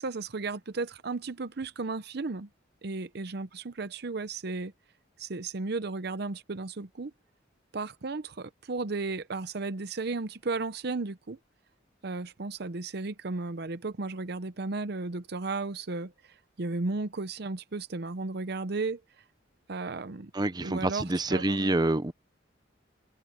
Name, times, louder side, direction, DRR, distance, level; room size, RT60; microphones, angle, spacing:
voice 1, 0.0-2.5 2.8-4.7 5.2-7.1 7.7-11.4 12.0-16.1 16.6-19.0 19.7-20.3 20.6-21.7, right 3 dB, 60° right, 0.7 m, -34 dB
voice 2, 20.3-22.1, right 2 dB, 20° right, 0.9 m, -27 dB
head